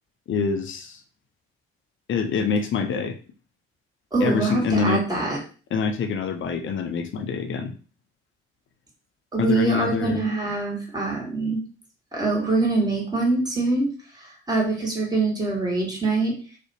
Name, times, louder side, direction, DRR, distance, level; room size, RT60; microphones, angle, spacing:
voice 1, 0.3-1.0 2.1-3.2 4.2-5.0 5.7-7.7 9.4-10.3, left 5 dB, 35° left, 6 dB, 0.5 m, -25 dB
voice 2, 4.1-5.4 9.3-11.6 12.1-13.9 14.2-16.3, right 3 dB, 10° right, -3 dB, 1.2 m, -24 dB
2.5 x 2.1 x 2.6 m, 0.38 s
hypercardioid pair, 45°, 33 cm